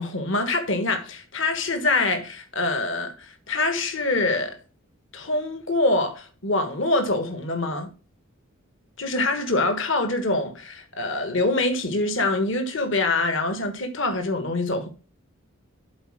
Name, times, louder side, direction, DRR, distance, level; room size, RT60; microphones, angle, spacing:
voice 1, 0.0-4.5 5.1-7.9 9.0-14.9, left 2 dB, 55° left, 1.4 m, -25 dB
8.0 x 4.3 x 6.3 m
head